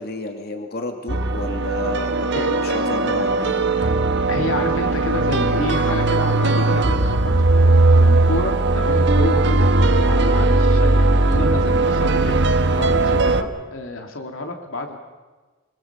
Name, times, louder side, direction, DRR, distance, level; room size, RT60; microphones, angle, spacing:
voice 1, 0.0-4.0, left 2 dB, 55° left, 4 dB, 2.5 m, -31 dB
sound 1, 1.1-13.4, right 2 dB, 65° right, 1.2 m, -18 dB
voice 2, 2.3-2.8 3.8-3.9 4.3-7.2 7.6-12.4 12.8-15.0, left 2 dB, 85° left, 4 dB, 2.4 m, -29 dB
27.0 x 21.5 x 5.8 m, 1.3 s
head